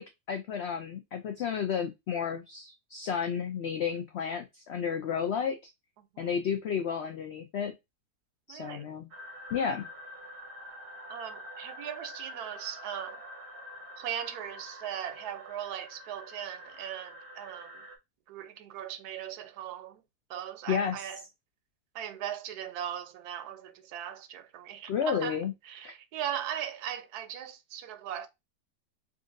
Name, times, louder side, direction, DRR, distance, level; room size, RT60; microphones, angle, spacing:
voice 1, 0.0-5.7 6.2-7.7 8.5-9.1 9.5-9.9 20.7-21.1 24.9-25.5 25.8-25.9, left 7 dB, 80° left, 0.5 m, -32 dB
voice 2, 8.5-8.9 11.1-13.2 14.0-17.9 18.3-20.0 20.3-21.2 21.9-25.4 25.6-28.3, right 10 dB, 75° right, 1.1 m, -39 dB
sound 1, 9.1-18.0, equal, 45° right, 0.7 m, -46 dB
3.8 x 2.5 x 2.5 m
omnidirectional pair, 1.7 m